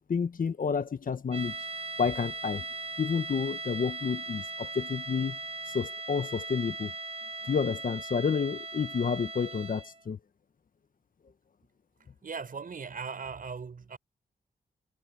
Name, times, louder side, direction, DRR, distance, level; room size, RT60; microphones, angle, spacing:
voice 1, 0.1-1.6 2.0-2.6 3.0-5.4 5.7-6.9 7.5-10.2, left 6 dB, 55° left, 1.5 m, -30 dB
sound 1, 1.3-10.0, right 3 dB, 35° right, 1.9 m, -39 dB
voice 2, 12.2-14.0, right 5 dB, 55° right, 6.0 m, -38 dB
cardioid pair, 50°, 17 cm